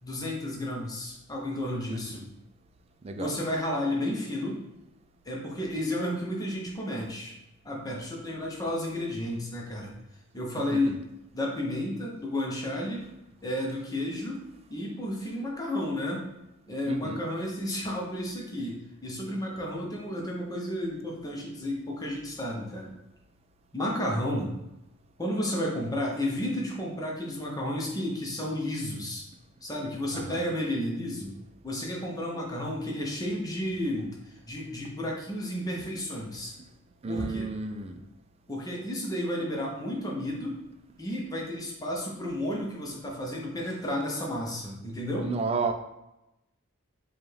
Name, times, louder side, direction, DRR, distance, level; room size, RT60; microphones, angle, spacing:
voice 1, 0.0-2.3 3.2-4.6 5.2-7.3 7.6-9.9 10.3-11.0 11.3-13.0 13.4-14.4 14.7-16.2 16.7-22.9 23.7-24.5 25.2-29.2 29.6-31.3 31.6-36.5 37.1-37.5 38.5-40.6 41.0-45.3, left 1 dB, 15° left, -2 dB, 0.8 m, -32 dB
voice 2, 16.9-17.2 30.1-30.4 37.0-38.0 45.2-45.7, right 4 dB, 30° right, 5 dB, 0.3 m, -32 dB
4.9 x 2.4 x 3.2 m, 0.91 s
head